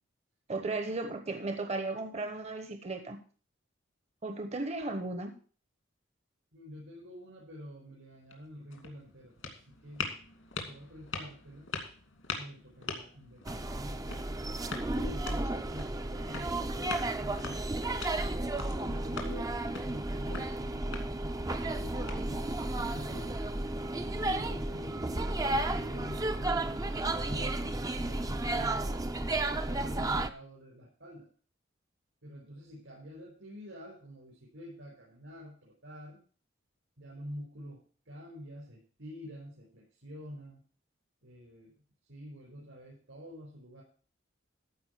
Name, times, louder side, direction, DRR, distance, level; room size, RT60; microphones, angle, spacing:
voice 1, 0.5-3.2 4.2-5.3, right 2 dB, 35° right, 6 dB, 1.0 m, -35 dB
voice 2, 6.5-10.1 10.6-11.7 12.3-14.1 14.9-17.6 18.4-21.1 21.4-23.3 23.9-29.1 29.5-31.3 32.2-36.2 37.0-40.6 41.2-41.7 42.1-43.8, equal, 75° right, -5 dB, 5.1 m, -47 dB
sound 1, 8.1-22.7, left 4 dB, 80° left, 2.6 m, -44 dB
sound 2, 13.4-30.3, right 2 dB, 20° right, 0.6 m, -33 dB
14.0 x 5.0 x 6.7 m, 0.41 s
head